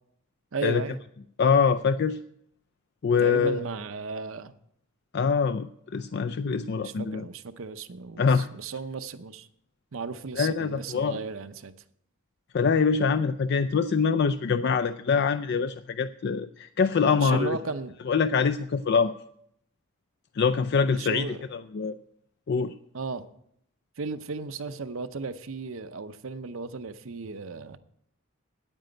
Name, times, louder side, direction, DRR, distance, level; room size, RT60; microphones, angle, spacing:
voice 1, 0.5-1.0 3.2-4.5 6.8-9.5 9.9-11.7 17.1-17.9 20.8-21.4 22.9-23.3 24.0-27.8, right 4 dB, 70° right, 11 dB, 0.7 m, -35 dB
voice 2, 1.4-2.2 3.0-3.6 5.1-5.7 5.9-7.2 8.2-8.5 10.3-11.2 12.5-17.6 18.1-19.1 20.4-22.0 22.5-22.7, left 5 dB, 50° left, 10 dB, 0.4 m, -24 dB
9.3 x 9.1 x 7.8 m, 0.72 s
head